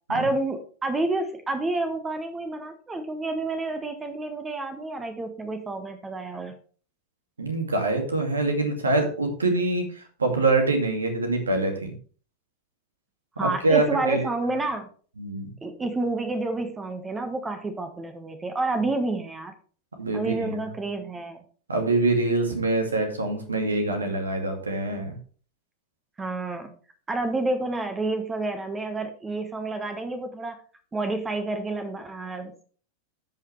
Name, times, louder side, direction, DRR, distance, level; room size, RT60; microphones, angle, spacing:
voice 1, 0.1-6.6 13.4-14.9 15.6-19.5 20.1-21.4 26.2-26.7 27.1-30.6 30.9-32.6, right 2 dB, 15° right, 7 dB, 1.3 m, -29 dB
voice 2, 7.4-11.9 13.4-14.3 15.2-15.5 20.0-20.6 21.7-25.2, right 2 dB, 75° right, 4 dB, 2.2 m, -25 dB
14.5 x 5.6 x 3.2 m, 0.41 s
figure-of-eight pair, 90°, 0 cm